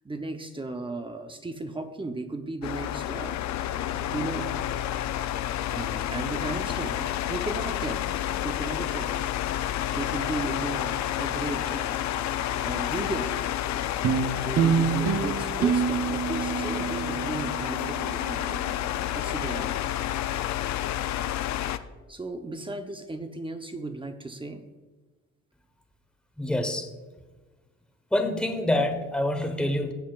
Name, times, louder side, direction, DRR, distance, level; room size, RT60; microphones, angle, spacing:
voice 1, 0.0-3.4 4.1-4.6 5.7-8.1 8.4-9.2 9.9-12.1 12.6-13.3 14.4-18.6 19.1-19.9 22.1-24.6, right 2 dB, 15° right, 6 dB, 0.8 m, -35 dB
sound 1, 2.6-21.8, left 12 dB, 65° left, 0.5 m, -30 dB
sound 2, 14.0-18.7, right 6 dB, 55° right, 0.8 m, -27 dB
voice 2, 26.4-26.9 28.1-29.9, left 1 dB, 5° left, 5 dB, 1.1 m, -26 dB
17.0 x 7.4 x 2.4 m, 1.3 s
cardioid pair, 90°, 30 cm